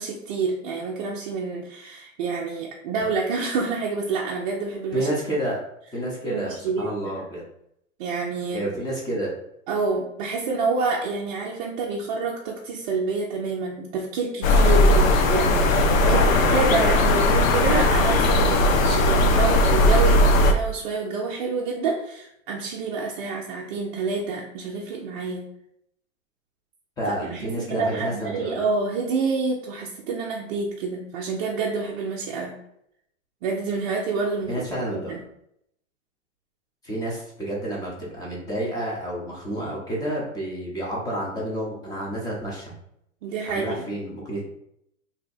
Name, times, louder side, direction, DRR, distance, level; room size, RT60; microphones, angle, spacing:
voice 1, 0.0-5.1 6.3-7.2 8.0-8.7 9.7-16.2 16.5-25.4 27.2-32.5 33.4-34.5 34.9-35.2 43.2-43.9, right 4 dB, 40° right, -2 dB, 0.4 m, -28 dB
voice 2, 4.9-5.6 5.9-7.4 8.5-9.4 16.0-16.5 16.8-17.1 27.0-28.6 34.5-35.2 36.8-42.7 43.4-44.4, right 1 dB, 10° left, -4 dB, 0.7 m, -29 dB
sound 1, 14.4-20.5, left 1 dB, 85° left, 0.6 m, -18 dB
2.7 x 2.1 x 4.0 m, 0.75 s
hypercardioid pair, 135°, 39 cm